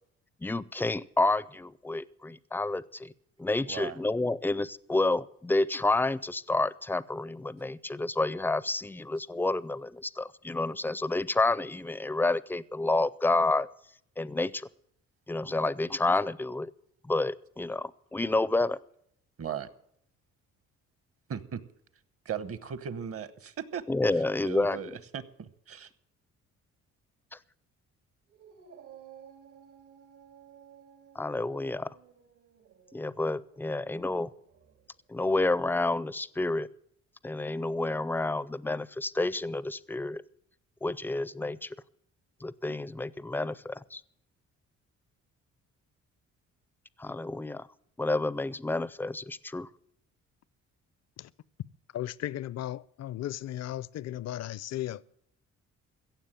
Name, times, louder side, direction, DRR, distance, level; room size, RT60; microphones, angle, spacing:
voice 1, 0.4-3.1 3.4-13.7 14.2-14.7 15.3-16.7 17.0-18.8 23.9-25.0 27.3-27.4 31.1-31.9 32.9-34.3 35.1-36.7 37.2-40.2 40.8-41.8 42.4-44.0 47.0-47.7 48.0-49.7, left 2 dB, 5° left, 0.4 m, -29 dB
voice 2, 3.7-4.0 19.4-19.7 21.3-21.6 22.3-23.8 24.4-25.2 25.7-25.9, right 8 dB, 50° right, 1.1 m, -37 dB
Dog, 28.3-34.9, right 8 dB, 75° right, 2.2 m, -55 dB
voice 3, 51.9-55.0, left 13 dB, 60° left, 0.5 m, -36 dB
16.0 x 7.3 x 9.0 m
cardioid pair, 90°, 30 cm